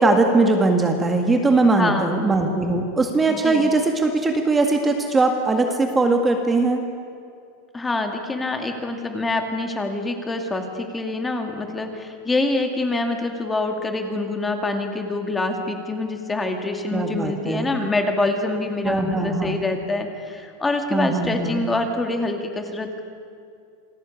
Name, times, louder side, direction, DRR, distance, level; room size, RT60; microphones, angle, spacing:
voice 1, 0.0-6.8 16.9-17.7 18.8-19.6 20.9-21.6, right 3 dB, 10° right, 3 dB, 1.9 m, -20 dB
voice 2, 1.8-2.2 3.3-3.7 7.7-23.0, left 2 dB, 10° left, 4 dB, 2.2 m, -25 dB
27.5 x 18.5 x 8.6 m, 2.3 s
supercardioid pair, 150°, 0 cm